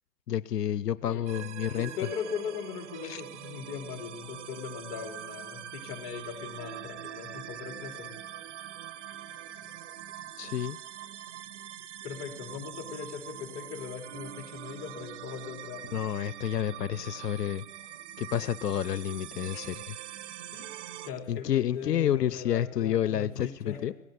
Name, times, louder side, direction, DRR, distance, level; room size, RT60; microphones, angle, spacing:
voice 1, 0.3-1.9 3.0-3.2 10.4-10.8 15.9-17.6 18.2-20.0 21.3-23.9, left 10 dB, 90° left, 17 dB, 0.7 m, -29 dB
sound 1, 1.3-21.1, right 11 dB, 50° right, 1.3 m, -44 dB
voice 2, 1.7-8.1 12.0-16.0 19.5-19.6 20.5-20.7 21.0-23.8, left 7 dB, 25° left, 4 dB, 3.4 m, -39 dB
18.0 x 16.5 x 9.5 m, 1.0 s
hypercardioid pair, 130°, 46 cm